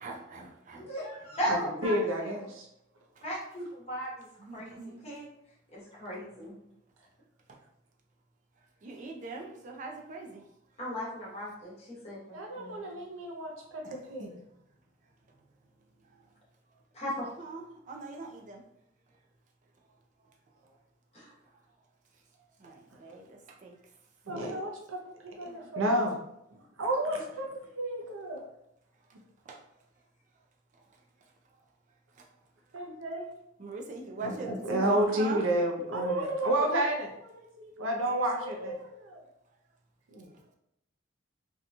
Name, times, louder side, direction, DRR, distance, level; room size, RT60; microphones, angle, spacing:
voice 1, 0.0-0.8 4.4-5.0 8.8-10.4 13.8-14.3 17.4-18.6 22.6-23.2 23.6-23.7 25.4-25.6 29.5-29.6 33.6-35.4, right 3 dB, 40° right, 2 dB, 0.4 m, -42 dB
voice 2, 0.7-1.9 3.2-4.3 4.5-5.3 5.7-6.5 10.8-12.8 16.9-17.3 21.1-21.3, equal, 30° left, -6 dB, 1.0 m, -37 dB
voice 3, 1.5-2.7 12.3-14.3 24.3-26.2 26.8-28.4 32.7-33.2 34.2-39.2 40.1-40.3, right 1 dB, 85° right, 2 dB, 0.6 m, -31 dB
2.8 x 2.2 x 2.6 m, 0.78 s
head